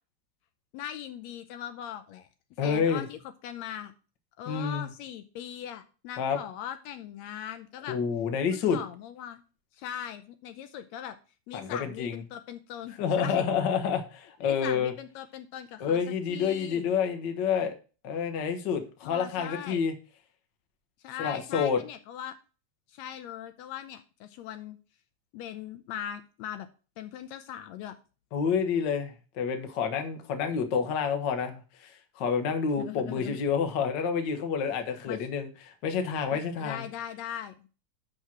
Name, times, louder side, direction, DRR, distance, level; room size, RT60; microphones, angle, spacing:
voice 1, 0.7-2.3 2.6-3.9 4.4-8.0 8.5-9.4 9.7-11.2 11.5-13.5 14.4-16.9 19.0-19.8 21.0-22.3 22.9-24.8 25.3-26.7 27.0-28.0 32.8-33.4 35.1-35.2 36.3-37.7, left 10 dB, 80° left, 9 dB, 1.8 m, -40 dB
voice 2, 2.6-3.0 4.5-4.9 6.2-6.4 7.9-8.8 11.5-12.2 13.0-14.9 15.8-17.7 18.0-19.9 21.2-21.8 28.3-36.9, left 6 dB, 55° left, 6 dB, 1.4 m, -28 dB
7.2 x 5.5 x 6.0 m, 0.34 s
omnidirectional pair, 3.3 m